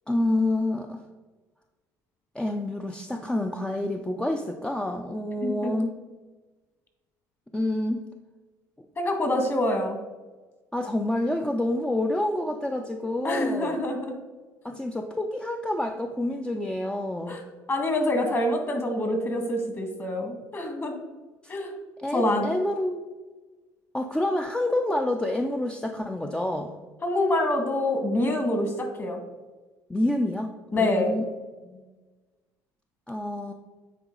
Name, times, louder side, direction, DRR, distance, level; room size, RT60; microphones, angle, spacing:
voice 1, 0.1-1.0 2.3-5.9 7.5-8.1 10.7-13.8 14.6-17.4 21.4-21.5 22.0-23.0 23.9-26.7 29.9-30.5 30.8-31.2 31.6-31.8 33.1-33.5, left 1 dB, 10° left, 4 dB, 0.6 m, -28 dB
voice 2, 5.4-5.8 9.0-10.0 13.2-14.2 17.3-17.4 17.7-21.0 21.5-21.7 22.1-22.4 27.0-29.2 30.7-31.1, left 1 dB, 30° left, 4 dB, 2.0 m, -26 dB
9.2 x 4.0 x 3.9 m, 1.3 s
supercardioid pair, 75°, 8 cm